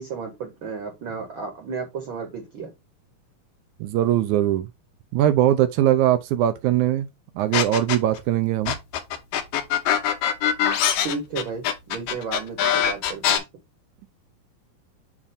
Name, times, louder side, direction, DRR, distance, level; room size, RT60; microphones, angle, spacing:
voice 1, 0.0-2.7 11.0-13.4, right 5 dB, 50° right, 1.5 m, -33 dB
voice 2, 3.8-4.7 5.1-7.1 7.3-8.8, right 12 dB, 80° right, 1.9 m, -21 dB
sound 1, 7.5-8.2 8.7-13.4, left 9 dB, 80° left, 2.6 m, -22 dB
7.4 x 2.6 x 5.1 m
omnidirectional pair, 3.9 m